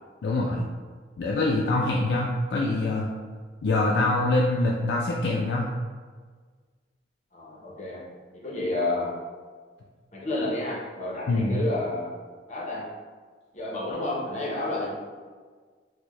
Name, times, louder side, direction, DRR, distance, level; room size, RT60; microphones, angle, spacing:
voice 1, 0.2-0.7 1.2-3.1 3.6-5.7 11.3-11.6, left 2 dB, 70° left, -2 dB, 0.4 m, -24 dB
voice 2, 7.3-8.0 8.3-9.1 10.1-12.1 12.5-12.9 13.5-14.9, left 2 dB, 40° left, -3 dB, 0.7 m, -30 dB
4.3 x 2.1 x 3.0 m, 1.5 s
head